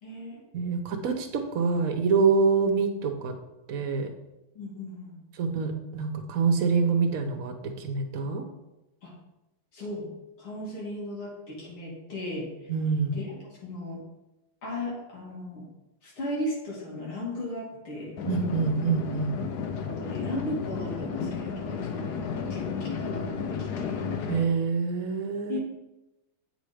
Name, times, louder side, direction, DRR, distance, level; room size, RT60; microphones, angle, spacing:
voice 1, 0.0-0.4 4.5-5.2 9.0-9.1 9.7-10.1 10.4-12.7 13.1-14.0 14.6-15.7 16.0-18.2 19.8-24.1 25.5-25.6, left 1 dB, 85° left, -5 dB, 3.2 m, -36 dB
voice 2, 0.5-3.3 3.7-4.1 5.4-8.4 12.7-13.2 18.3-19.4 24.3-25.6, right 5 dB, 55° right, 5 dB, 1.1 m, -26 dB
sound 1, 18.2-24.4, left 6 dB, 65° left, 1.1 m, -33 dB
8.5 x 5.3 x 5.0 m, 0.97 s
omnidirectional pair, 2.3 m